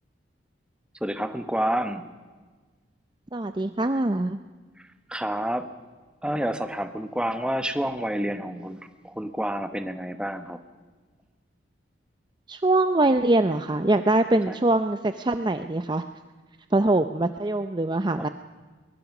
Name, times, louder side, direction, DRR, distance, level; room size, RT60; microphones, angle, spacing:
voice 1, 1.0-2.1 5.1-5.7 6.2-8.8 9.0-10.6 14.5-14.6 18.2-18.3, right 1 dB, 5° right, 9 dB, 1.1 m, -29 dB
voice 2, 3.3-4.4 12.5-16.0 16.7-18.3, right 2 dB, 25° right, 9 dB, 0.5 m, -23 dB
22.5 x 21.0 x 6.0 m, 1.4 s
head